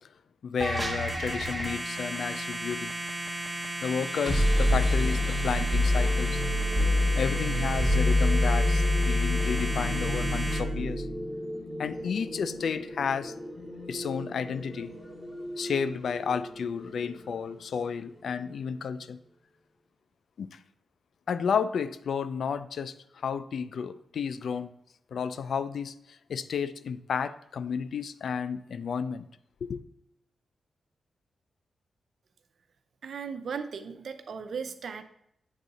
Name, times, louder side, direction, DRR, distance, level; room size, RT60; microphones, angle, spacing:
voice 1, 0.4-2.9 3.8-6.4 6.8-6.9 7.2-11.1 11.8-13.3 13.9-14.9 15.6-19.2 20.4-20.6 21.3-24.7 25.1-29.3 29.6-29.8, left 6 dB, 70° left, 0.3 m, -32 dB
sound 1, 0.6-10.6, right 1 dB, 15° right, 1.1 m, -34 dB
sound 2, 4.1-17.8, left 1 dB, 25° left, 2.4 m, -28 dB
voice 2, 33.0-35.0, right 6 dB, 65° right, 0.5 m, -37 dB
8.2 x 3.7 x 4.0 m
cardioid pair, 70°, 0 cm